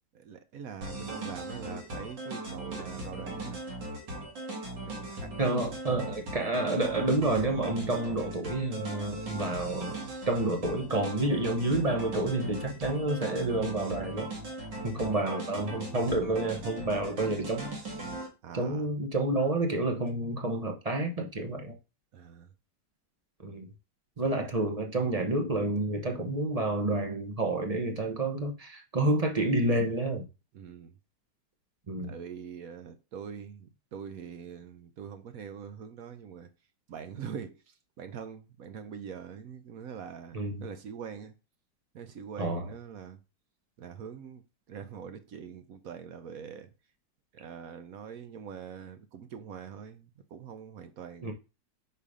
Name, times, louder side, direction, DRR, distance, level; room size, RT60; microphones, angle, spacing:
voice 1, 0.1-3.6 4.8-5.3 18.4-18.9 22.1-22.5 24.2-24.5 30.5-30.9 32.1-36.5 36.9-41.3 41.9-43.2 43.8-44.4 44.7-46.7 47.3-51.3, right 7 dB, 65° right, 1.0 m, -43 dB
sound 1, 0.8-18.3, right 2 dB, 80° right, 2.4 m, -39 dB
voice 2, 5.4-10.0 10.3-14.3 14.8-17.8 18.5-21.7 23.4-23.7 24.2-30.2 31.9-32.1 40.3-40.6 42.4-42.7 51.2-51.3, right 2 dB, 30° right, 0.7 m, -29 dB
5.1 x 4.6 x 4.9 m
omnidirectional pair, 1.9 m